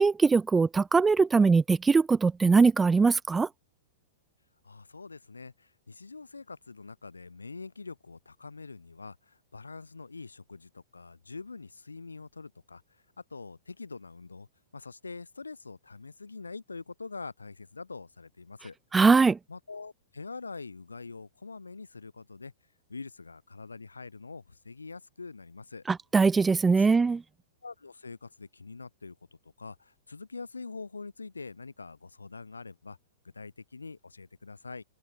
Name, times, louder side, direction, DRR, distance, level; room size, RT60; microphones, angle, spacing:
voice 1, 0.0-3.5 18.9-19.4 25.9-27.2, right 4 dB, 10° right, 0.4 m, -21 dB
voice 2, 4.6-12.8 13.3-14.5 14.7-18.8 19.5-22.5 22.9-25.8 26.7-26.9 27.6-29.2 29.4-33.0 33.3-34.8, left 4 dB, 80° left, 7.9 m, -44 dB
open air
figure-of-eight pair, 105°, 0 cm